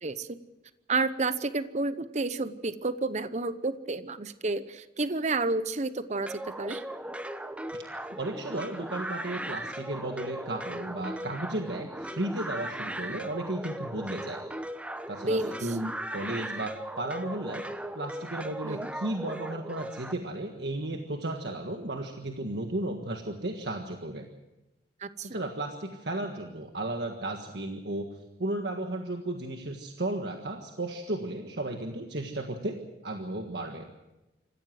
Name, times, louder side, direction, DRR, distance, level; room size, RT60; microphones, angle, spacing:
voice 1, 0.0-0.4 0.9-6.8 15.2-15.6 18.6-18.9 25.0-25.4, right 3 dB, 40° right, 13 dB, 0.8 m, -30 dB
sound 1, 6.3-20.1, right 1 dB, 5° right, 1.0 m, -38 dB
voice 2, 8.1-14.4 15.1-17.7 17.9-24.3 25.2-28.1 28.4-33.9, right 1 dB, 70° right, 3 dB, 1.6 m, -34 dB
26.5 x 15.0 x 7.7 m, 1.0 s
head